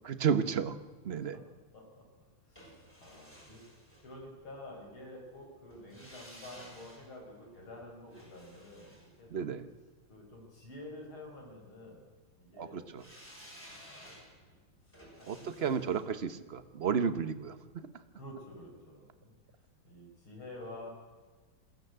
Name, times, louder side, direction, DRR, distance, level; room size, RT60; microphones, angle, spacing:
voice 1, 0.0-0.8 1.0-1.3 9.3-9.6 12.6-13.0 15.3-17.5, right 7 dB, 45° right, 12 dB, 0.8 m, -32 dB
voice 2, 1.1-1.4 1.7-2.0 2.5-3.6 4.0-9.5 10.1-12.1 12.4-13.0 13.6-14.6 14.9-15.9 18.1-19.3 19.8-20.9, left 1 dB, 75° left, 1 dB, 6.1 m, -49 dB
sound 1, 2.6-4.7 5.7-10.0 13.0-18.0 18.3-18.4, equal, 5° left, 6.8 m, -55 dB
22.0 x 16.0 x 8.0 m, 1.4 s
omnidirectional pair, 2.3 m